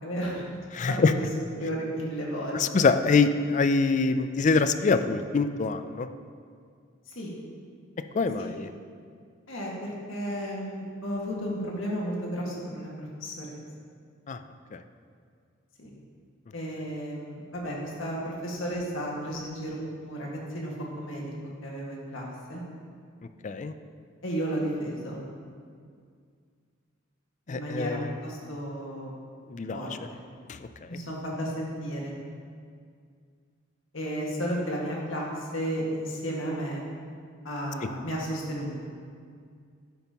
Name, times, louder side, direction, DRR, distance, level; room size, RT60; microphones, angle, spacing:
voice 1, 0.0-0.4 0.9-1.2 1.6-2.6 7.1-7.3 8.4-8.5 9.5-12.9 13.2-13.6 15.8-15.9 16.5-21.3 21.6-22.6 24.2-25.2 27.5-29.1 29.7-30.2 30.9-32.1 33.9-36.8 37.4-38.7, equal, 70° left, -3 dB, 1.9 m, -33 dB
voice 2, 0.7-1.1 2.5-6.1 8.1-8.7 14.3-14.4 14.7-14.8 23.4-23.7 27.5-28.2 29.5-29.9 30.5-30.6 30.9-31.0, left 4 dB, 35° left, 10 dB, 0.4 m, -24 dB
10.0 x 8.9 x 3.0 m, 2.1 s
head